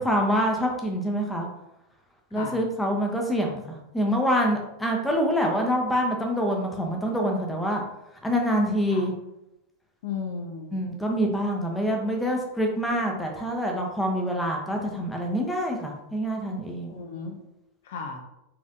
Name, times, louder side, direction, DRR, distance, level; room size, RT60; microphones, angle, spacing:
voice 1, 0.0-1.5 2.3-7.8 8.2-9.1 10.7-17.0, equal, 5° left, 1 dB, 0.8 m, -26 dB
voice 2, 10.0-10.8 16.8-17.3 17.9-18.2, left 5 dB, 55° left, 4 dB, 0.5 m, -34 dB
4.2 x 3.5 x 2.6 m, 0.88 s
figure-of-eight pair, 90°, 0 cm